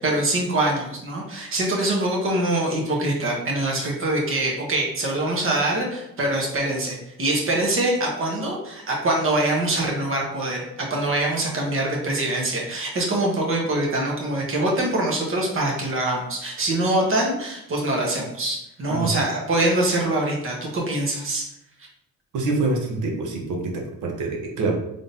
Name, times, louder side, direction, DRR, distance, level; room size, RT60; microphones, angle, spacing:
voice 1, 0.0-21.5, right 1 dB, 45° right, -1 dB, 1.2 m, -24 dB
voice 2, 22.3-23.7 24.0-24.7, right 3 dB, 80° right, 1 dB, 1.0 m, -25 dB
3.7 x 3.4 x 2.7 m, 0.81 s
cardioid pair, 90°, 30 cm